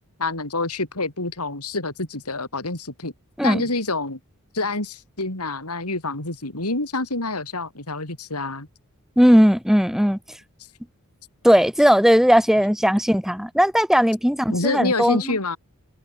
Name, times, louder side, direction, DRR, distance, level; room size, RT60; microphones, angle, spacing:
voice 1, 0.2-3.1 3.4-4.2 4.5-8.7 14.5-15.6, left 2 dB, 90° left, 5.7 m, -27 dB
voice 2, 9.2-10.2 11.4-15.4, equal, ahead, 1.9 m, -17 dB
head